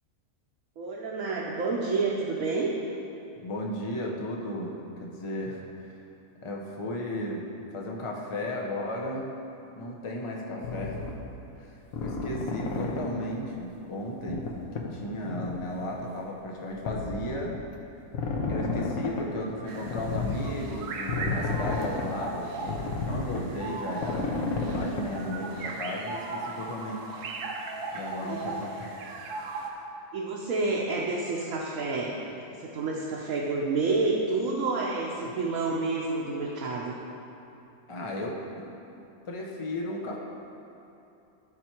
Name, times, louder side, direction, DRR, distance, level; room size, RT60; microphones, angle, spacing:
voice 1, 0.8-2.7 18.4-18.5 28.1-28.8 30.1-36.9, right 3 dB, 65° right, -3 dB, 1.1 m, -29 dB
voice 2, 3.4-5.9 6.4-7.4 7.7-9.3 9.8-11.0 11.6-11.8 12.0-14.5 14.8-17.6 18.5-24.3 24.7-27.0 27.9-28.9 37.9-40.2, left 1 dB, 45° left, -2 dB, 0.3 m, -35 dB
sound 1, 10.6-11.1 11.9-13.2 14.3-14.5 14.7-14.9 15.3-15.6 16.9-17.6 18.1-19.2 19.8-20.4 21.1-22.2 22.6-23.5 24.0-25.1, left 3 dB, 65° left, 1.2 m, -31 dB
sound 2, 19.7-29.7, right 3 dB, 85° right, 1.3 m, -38 dB
12.0 x 4.5 x 4.4 m, 2.8 s
omnidirectional pair, 1.6 m